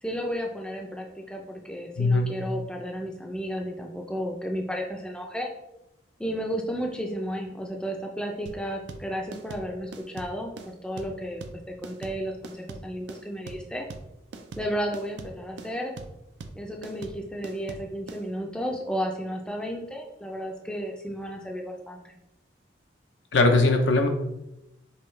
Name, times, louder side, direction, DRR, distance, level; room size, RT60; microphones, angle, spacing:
voice 1, 0.0-5.5 6.2-10.5 10.8-13.9 14.6-15.9 16.6-22.1, equal, 5° left, 1 dB, 0.4 m, -33 dB
voice 2, 2.0-2.3 23.3-24.1, left 3 dB, 75° left, 5 dB, 0.6 m, -20 dB
sound 1, 8.5-18.2, right 3 dB, 70° right, 0.4 m, -41 dB
5.5 x 2.3 x 3.2 m, 0.90 s
head